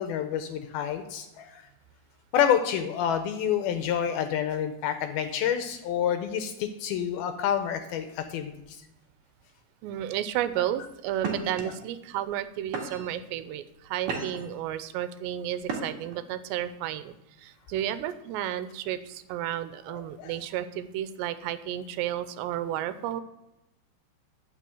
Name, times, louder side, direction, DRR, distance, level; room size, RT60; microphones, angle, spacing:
voice 1, 0.0-1.6 2.3-8.8 19.9-20.3, left 9 dB, 75° left, 8 dB, 2.3 m, -28 dB
voice 2, 9.8-23.2, right 11 dB, 85° right, 12 dB, 2.9 m, -32 dB
sound 1, 10.3-10.6 11.2-11.6 12.3-12.4 12.7-13.2 13.7-14.5 15.6-16.2, right 4 dB, 55° right, 2.7 m, -34 dB
11.5 x 6.2 x 7.7 m, 0.93 s
omnidirectional pair, 4.9 m